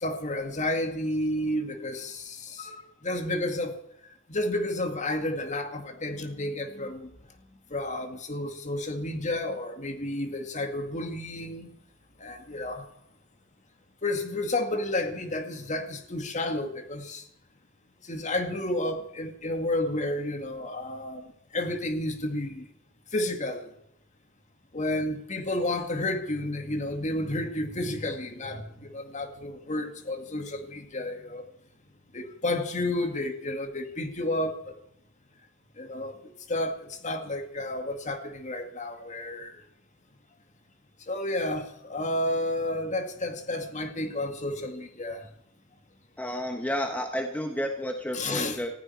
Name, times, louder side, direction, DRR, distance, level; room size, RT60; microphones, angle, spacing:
voice 1, 0.0-2.8 3.0-3.8 4.3-7.1 7.7-11.7 12.2-12.8 14.0-17.2 18.1-21.2 21.5-22.6 23.1-23.6 24.7-31.4 32.1-34.7 35.8-36.1 36.5-36.8 37.0-39.5 41.1-45.3 48.1-48.6, left 1 dB, 35° left, 6 dB, 2.0 m, -31 dB
voice 2, 46.2-48.7, equal, 10° left, 4 dB, 1.1 m, -31 dB
19.5 x 14.5 x 4.6 m, 0.76 s
head